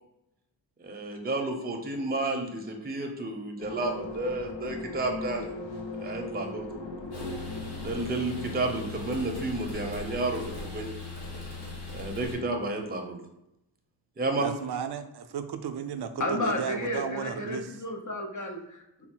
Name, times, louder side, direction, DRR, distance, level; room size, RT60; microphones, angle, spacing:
voice 1, 0.8-5.5 5.9-6.7 7.8-10.9 11.9-13.2 14.2-14.5, right 2 dB, 20° right, 2 dB, 0.6 m, -31 dB
sound 1, 3.6-8.9, left 2 dB, 80° left, 0.7 m, -38 dB
sound 2, 7.1-12.4, left 3 dB, 60° left, 1.5 m, -39 dB
voice 2, 14.4-17.8, right 7 dB, 65° right, 9 dB, 0.5 m, -34 dB
voice 3, 16.2-19.1, left 1 dB, 45° left, 2 dB, 0.7 m, -32 dB
3.9 x 2.0 x 4.4 m, 0.85 s
wide cardioid pair, 70°, 43 cm